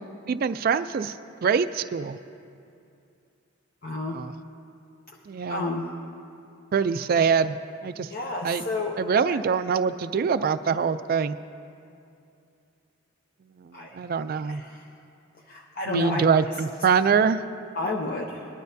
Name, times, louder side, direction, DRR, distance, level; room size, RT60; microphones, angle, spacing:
voice 1, 0.3-1.1 1.4-2.2 4.1-4.3 5.3-5.7 6.7-7.6 7.8-8.1 8.4-8.6 9.0-11.3 13.9-14.6 15.9-17.4, right 6 dB, 45° right, 13 dB, 0.3 m, -24 dB
voice 2, 3.8-4.2 5.5-5.9 8.1-8.9 9.3-9.4 13.7-13.9 14.4-14.8 15.5-16.3 17.7-18.4, left 2 dB, 45° left, -1 dB, 0.7 m, -30 dB
19.0 x 11.5 x 2.7 m, 2.6 s
head